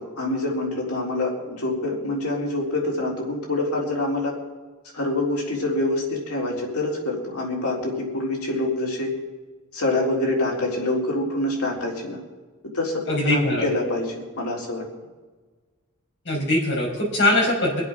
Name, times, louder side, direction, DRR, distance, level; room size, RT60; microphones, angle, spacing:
voice 1, 0.0-4.4 4.9-9.1 9.7-12.2 12.7-14.8, left 2 dB, 85° left, -2 dB, 3.9 m, -26 dB
voice 2, 13.1-13.6 16.3-17.8, left 1 dB, 55° left, -2 dB, 5.6 m, -22 dB
24.0 x 8.2 x 6.1 m, 1.3 s
head